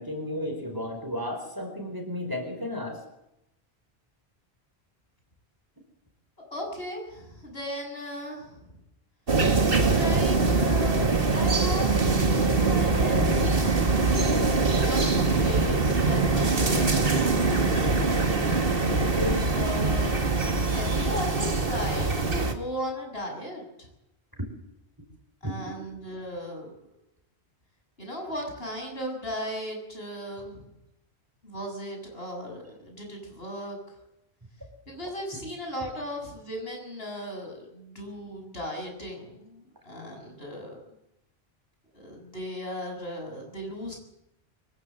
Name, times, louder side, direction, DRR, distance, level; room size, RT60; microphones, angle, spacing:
voice 1, 0.0-3.0 19.1-19.4 25.4-25.5, left 1 dB, 20° right, 4 dB, 4.6 m, -32 dB
voice 2, 6.5-8.7 9.8-13.3 13.6-14.2 14.8-18.6 19.5-23.9 25.4-26.7 28.0-30.7 31.4-33.8 34.9-40.8 41.9-44.0, equal, 70° left, 1 dB, 7.7 m, -37 dB
sound 1, 9.3-22.5, right 3 dB, 60° right, 2.2 m, -23 dB
24.5 x 15.5 x 7.8 m, 0.84 s
omnidirectional pair, 1.1 m